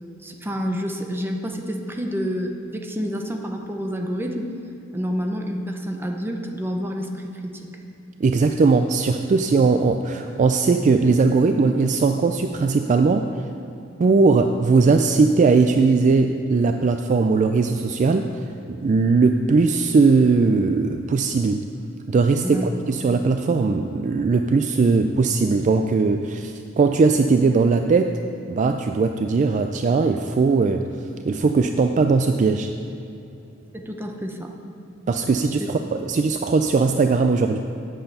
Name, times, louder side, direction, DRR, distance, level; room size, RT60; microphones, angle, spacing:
voice 1, 0.2-4.5 4.9-7.7 22.4-22.7 33.7-34.5, equal, 10° right, 2 dB, 0.8 m, -28 dB
voice 2, 8.2-13.3 14.0-18.3 18.7-21.6 22.1-28.2 28.5-30.9 31.3-32.7 35.1-37.6, right 4 dB, 35° right, 6 dB, 0.3 m, -19 dB
8.9 x 7.9 x 5.5 m, 2.8 s
head